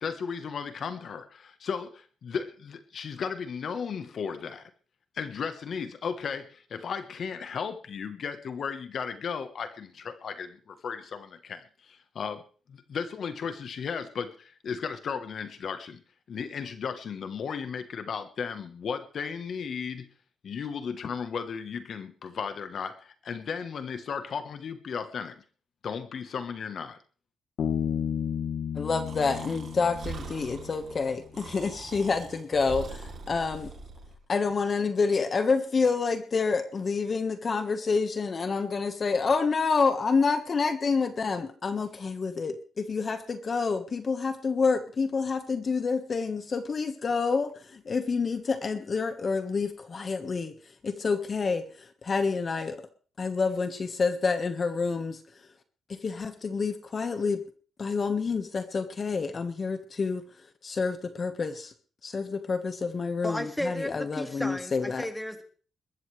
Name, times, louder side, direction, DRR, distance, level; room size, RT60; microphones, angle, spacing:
voice 1, 0.0-4.7 5.1-12.4 12.7-16.0 16.3-20.1 20.4-25.4 25.8-27.0, left 6 dB, 55° left, 9 dB, 1.3 m, -35 dB
Bass guitar, 27.6-31.1, left 8 dB, 75° left, 3.2 m, -32 dB
voice 2, 28.7-33.7 34.3-50.5 50.8-52.8 53.2-55.2 55.9-57.4 57.8-60.2 60.6-61.7 62.0-65.1, left 4 dB, 40° left, 8 dB, 1.5 m, -28 dB
Breathing, 29.1-34.2, right 5 dB, 55° right, 3.3 m, -42 dB
voice 3, 63.2-65.4, left 1 dB, 5° left, 7 dB, 2.1 m, -34 dB
21.0 x 14.0 x 3.4 m, 0.41 s
cardioid pair, 115°, 0 cm